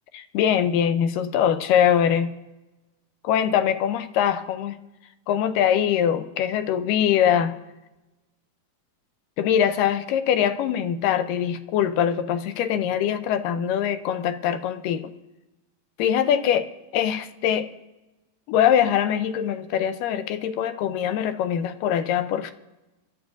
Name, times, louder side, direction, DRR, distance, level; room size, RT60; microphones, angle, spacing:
voice 1, 0.1-2.3 3.2-4.8 5.3-7.6 9.4-15.1 16.0-17.7 18.5-22.5, left 9 dB, 80° left, 11 dB, 2.2 m, -23 dB
25.5 x 12.5 x 2.5 m, 1.0 s
omnidirectional pair, 3.9 m